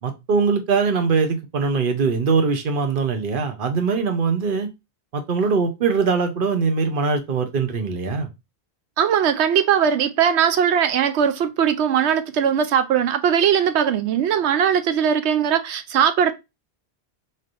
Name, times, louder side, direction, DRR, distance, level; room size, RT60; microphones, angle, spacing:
voice 1, 0.0-4.7 5.1-8.3, right 5 dB, 55° right, 1.0 m, -22 dB
voice 2, 9.0-16.3, right 8 dB, 80° right, 0.9 m, -19 dB
4.2 x 3.2 x 2.5 m
omnidirectional pair, 1.1 m